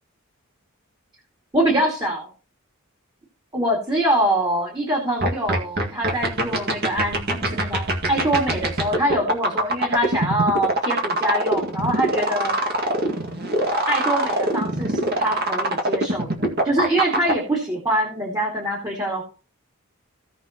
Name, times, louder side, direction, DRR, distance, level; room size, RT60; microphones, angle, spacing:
voice 1, 1.5-2.3 3.5-12.5 13.9-16.3 16.6-19.2, right 1 dB, 20° right, -2 dB, 2.5 m, -24 dB
sound 1, 5.2-17.3, right 1 dB, 45° right, 2.1 m, -22 dB
16.5 x 5.9 x 3.0 m, 0.34 s
head